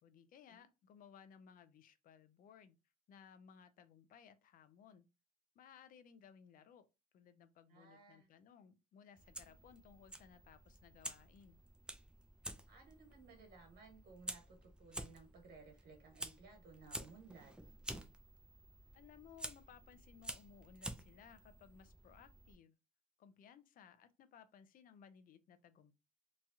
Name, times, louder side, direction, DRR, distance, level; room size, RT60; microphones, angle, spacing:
voice 1, 0.0-2.8 3.1-5.1 5.5-6.9 7.1-11.6 18.9-22.8 23.2-26.0, left 7 dB, 55° left, 0.5 m, -61 dB
voice 2, 7.7-8.3 12.7-17.5, right 4 dB, 65° right, 1.4 m, -59 dB
Fire, 9.2-22.5, right 1 dB, 5° right, 0.3 m, -51 dB
3.0 x 2.3 x 2.7 m
cardioid pair, 110°, 17 cm